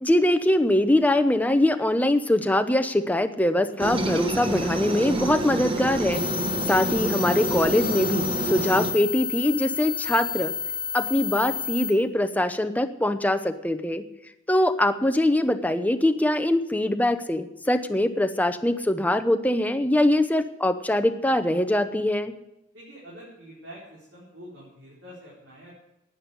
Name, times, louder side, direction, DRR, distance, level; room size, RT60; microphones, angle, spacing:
voice 1, 0.0-6.2 6.7-10.5 10.9-14.0 14.5-22.3, left 1 dB, 10° left, 9 dB, 0.8 m, -23 dB
Aircraft, 3.8-8.9, right 2 dB, 30° right, 1.3 m, -28 dB
sound 1, 6.1-11.9, left 7 dB, 45° left, 1.6 m, -31 dB
voice 2, 22.7-25.7, equal, 75° right, -6 dB, 4.5 m, -46 dB
11.5 x 9.6 x 8.2 m, 0.88 s
head